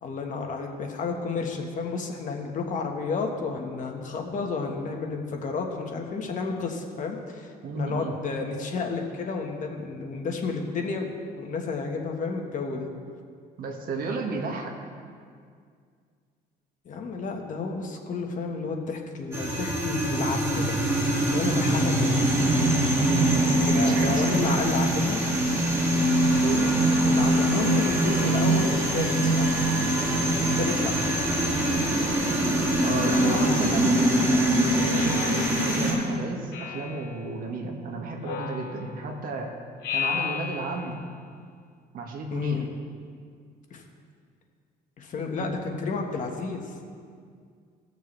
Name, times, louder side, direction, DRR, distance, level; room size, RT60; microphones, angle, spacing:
voice 1, 0.0-11.0 11.3-12.9 16.8-20.8 21.3-22.4 23.7-25.3 26.3-26.4 27.0-29.5 30.2-30.9 42.3-42.7 43.7-43.8 45.0-46.7, left 4 dB, 50° left, 2 dB, 1.4 m, -31 dB
voice 2, 7.6-8.1 13.6-14.7 21.7-21.8 23.0-24.6 25.9-26.8 32.8-39.5 39.9-41.0 41.9-42.6, right 3 dB, 60° right, 1 dB, 1.7 m, -33 dB
sound 1, 19.3-35.9, right 1 dB, 15° right, 2.2 m, -23 dB
Speech synthesizer, 33.1-34.2 34.9-35.9 36.5-37.2 38.2-39.1 39.8-41.0, left 7 dB, 70° left, 1.1 m, -34 dB
17.5 x 6.7 x 3.3 m, 2.1 s
cardioid pair, 110°, 17 cm